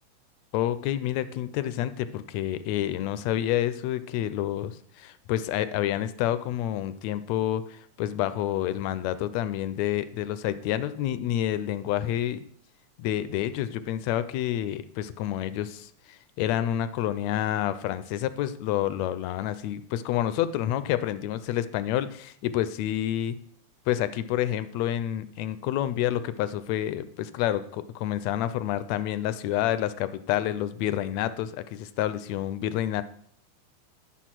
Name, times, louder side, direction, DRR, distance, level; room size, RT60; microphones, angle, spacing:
voice 1, 0.5-12.4 13.0-23.4 23.9-33.0, left 12 dB, 80° left, 13 dB, 1.7 m, -28 dB
9.6 x 6.3 x 5.9 m, 0.63 s
omnidirectional pair, 3.4 m